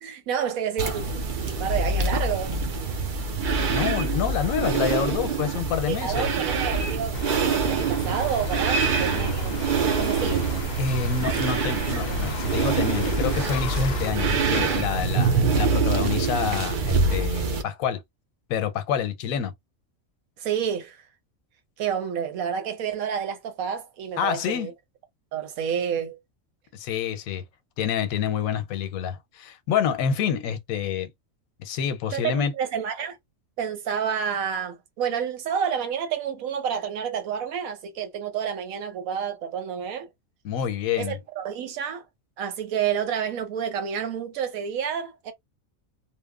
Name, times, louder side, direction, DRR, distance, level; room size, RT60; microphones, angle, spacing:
voice 1, 0.0-2.6 5.9-10.5 20.4-21.0 21.8-24.7 25.3-26.2 32.1-33.2 33.6-40.1 41.0-42.0 42.4-45.3, right 8 dB, 90° right, 1.2 m, -29 dB
sound 1, 0.8-17.6, right 4 dB, 65° right, 0.4 m, -25 dB
voice 2, 3.7-6.3 10.8-18.0 18.5-19.5 24.2-24.7 26.7-27.4 27.8-31.1 31.6-32.5 40.4-41.2, left 8 dB, 85° left, 1.0 m, -27 dB
sound 2, 7.1-14.1, left 6 dB, 60° left, 0.6 m, -37 dB
2.9 x 2.0 x 2.3 m
omnidirectional pair, 1.4 m